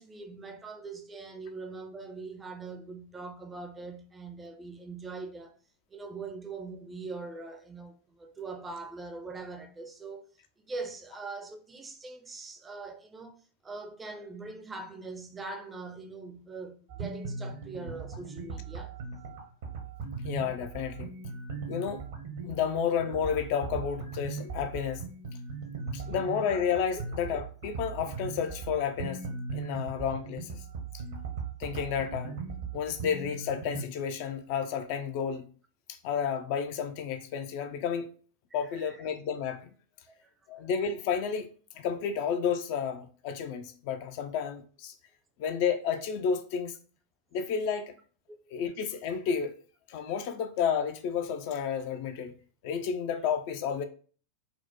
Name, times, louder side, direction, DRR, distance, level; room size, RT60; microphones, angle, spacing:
voice 1, 0.0-5.6 5.9-10.3 10.6-13.4 13.6-18.9 38.5-39.0 40.1-40.3 48.5-48.6, right 3 dB, 15° right, 0.4 m, -42 dB
sound 1, 16.9-33.8, right 4 dB, 55° right, 0.7 m, -39 dB
voice 2, 20.2-21.2 21.7-22.0 22.4-25.1 25.9-30.6 30.9-31.0 31.6-32.4 32.7-35.5 35.9-38.1 38.5-39.7 40.5-45.0 45.4-46.8 47.3-47.9 48.5-49.5 49.9-52.4 52.6-53.8, left 7 dB, 45° left, 0.4 m, -31 dB
4.2 x 2.0 x 2.7 m
figure-of-eight pair, 90°, 0 cm